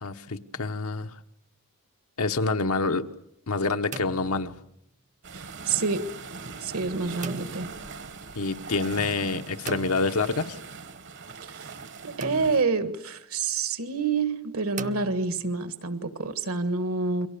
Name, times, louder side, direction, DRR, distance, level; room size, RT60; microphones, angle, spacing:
voice 1, 0.0-1.2 2.2-3.1 3.5-4.5 8.3-10.6, left 3 dB, 75° left, 7 dB, 1.1 m, -27 dB
sound 1, 0.5-1.1 3.6-4.9 7.2-7.8 9.7-10.6 12.2-12.9 14.8-15.7, right 4 dB, 35° right, 0.9 m, -40 dB
sound 2, 5.2-12.6, right 4 dB, 55° right, 1.2 m, -41 dB
voice 2, 5.3-6.1 6.6-7.7 11.4-11.7 12.0-17.3, right 4 dB, 70° right, 11 dB, 1.6 m, -28 dB
29.5 x 23.5 x 6.9 m, 0.80 s
head